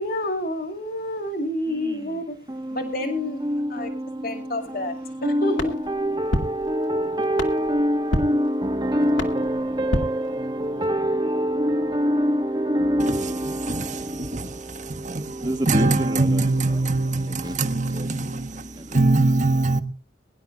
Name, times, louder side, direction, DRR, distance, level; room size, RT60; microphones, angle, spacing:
voice 1, 0.0-2.4 2.7-3.4 3.7-3.9 4.2-5.0 5.4-5.7 18.2-18.4, left 1 dB, 50° left, 2.2 m, -28 dB
voice 2, 1.7-19.0, equal, 20° right, 1.5 m, -26 dB
sound 1, 5.5-10.9, equal, 75° left, 2.2 m, -31 dB
voice 3, 13.7-14.6 14.9-15.3 15.7-19.8, right 2 dB, 40° right, 1.4 m, -23 dB
22.5 x 11.5 x 2.4 m
head